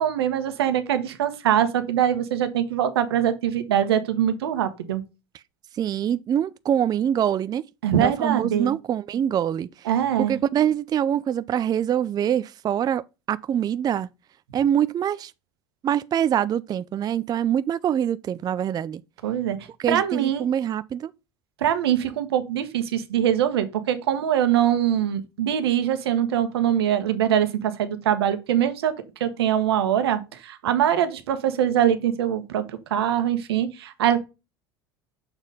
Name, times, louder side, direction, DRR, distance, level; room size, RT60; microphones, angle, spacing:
voice 1, 0.0-5.0 7.8-8.7 9.9-10.4 19.2-19.6 19.9-20.4 21.6-28.9 29.2-32.6 32.9-34.2, right 10 dB, 90° right, 1.2 m, -23 dB
voice 2, 5.7-7.6 8.0-9.9 10.2-13.0 13.3-14.1 14.5-15.3 15.8-19.0 19.8-21.1, right 9 dB, 30° right, 0.4 m, -24 dB
7.0 x 4.1 x 3.9 m
hypercardioid pair, 90°, 13 cm